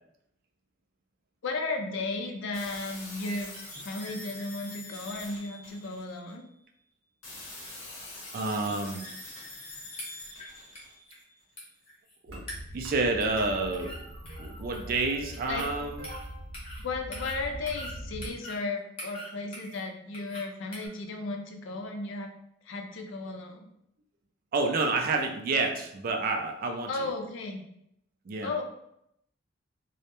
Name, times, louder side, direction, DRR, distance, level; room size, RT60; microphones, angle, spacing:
voice 1, 1.4-3.5 3.8-6.5 15.5-15.7 16.8-22.3 22.6-23.7 26.9-27.6 28.4-28.6, left 3 dB, 65° left, 3 dB, 0.4 m, -35 dB
sound 1, 2.5-6.4 7.2-11.4, left 2 dB, 90° left, 0.8 m, -44 dB
voice 2, 8.3-9.1 12.2-12.5 12.7-14.0 14.4-16.0 24.5-27.1 28.3-28.5, right 3 dB, 45° right, 3 dB, 0.3 m, -29 dB
sound 2, 10.0-10.5 10.7-10.8 11.1-11.2 11.6-12.2 12.5-12.9 13.2-13.5 13.7-14.0 14.3-14.9 15.3-15.7 16.0-16.2 16.5-16.8 17.1-17.9 18.2-18.6 19.0-19.8 20.1-20.4 20.7-20.9, left 1 dB, 30° left, 0.8 m, -42 dB
sound 3, 12.3-18.3, right 1 dB, 75° right, 0.7 m, -42 dB
2.2 x 2.0 x 2.9 m, 0.76 s
head